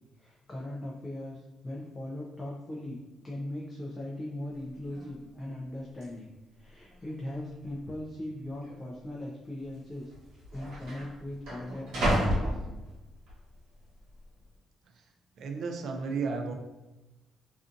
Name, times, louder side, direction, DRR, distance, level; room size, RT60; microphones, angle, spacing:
voice 1, 0.2-3.0 3.2-6.3 6.5-12.5, left 1 dB, 20° left, -4 dB, 0.3 m, -39 dB
sound 1, 4.5-4.6 4.9-5.3 6.0-6.1 6.9-7.4 7.6-7.8 8.6-8.8 9.8-9.9 10.1-13.3 13.8-14.2, equal, 80° right, 1.2 m, -32 dB
voice 2, 15.4-16.5, right 4 dB, 55° right, 4 dB, 0.3 m, -33 dB
2.5 x 2.4 x 2.4 m, 1.1 s
cardioid pair, 155°, 0 cm